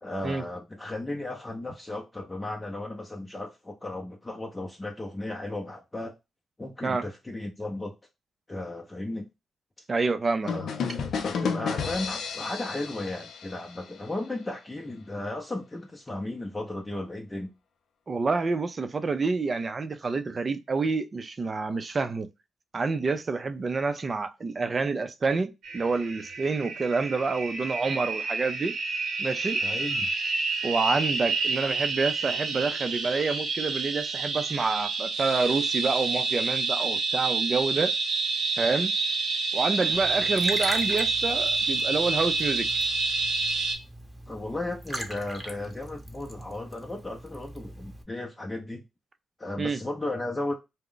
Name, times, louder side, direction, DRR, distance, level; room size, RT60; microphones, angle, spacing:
voice 1, 0.0-6.1 6.6-7.9 8.5-9.3 10.4-17.5 29.6-30.1 44.3-48.8 49.4-50.5, left 2 dB, 20° left, 0.6 m, -35 dB
voice 2, 9.9-10.5 18.1-22.3 22.7-28.7 29.2-29.6 30.6-37.9 38.6-38.9 39.5-42.7 49.6-49.8, right 4 dB, 40° right, 0.5 m, -28 dB
sound 1, 10.5-14.2, left 5 dB, 70° left, 0.4 m, -32 dB
sound 2, 25.6-43.7, right 4 dB, 75° right, 0.7 m, -28 dB
Liquid, 39.9-48.0, right 1 dB, 10° right, 0.9 m, -40 dB
2.3 x 2.1 x 3.7 m
supercardioid pair, 55°, 0 cm